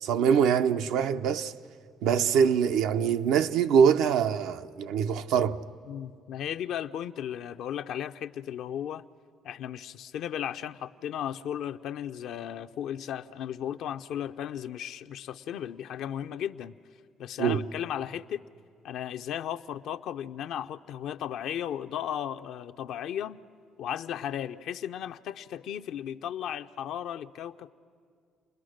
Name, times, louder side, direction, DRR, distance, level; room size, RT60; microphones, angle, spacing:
voice 1, 0.0-1.5 2.0-5.6 17.4-17.6, right 7 dB, 85° right, 0.6 m, -24 dB
voice 2, 5.9-9.0 9.4-16.7 17.2-18.4 18.8-23.4 23.8-27.7, left 10 dB, 75° left, 0.5 m, -35 dB
29.5 x 21.0 x 6.4 m
cardioid pair, 85°, 0 cm